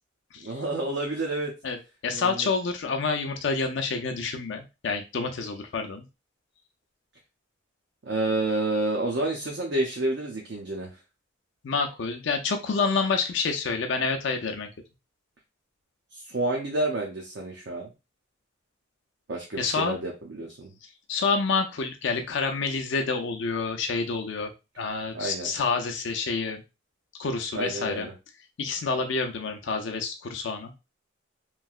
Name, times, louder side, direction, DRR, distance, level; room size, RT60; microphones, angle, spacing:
voice 1, 0.4-1.5 2.1-2.5 8.1-10.9 16.1-17.9 19.3-20.7 25.1-25.5 27.5-28.1, right 2 dB, 60° right, -1 dB, 0.6 m, -29 dB
voice 2, 2.0-6.0 11.6-14.7 19.6-20.0 21.1-24.5 24.8-26.6 27.2-28.1 28.6-30.7, left 4 dB, 60° left, 4 dB, 0.4 m, -28 dB
3.1 x 2.7 x 2.3 m, 0.27 s
head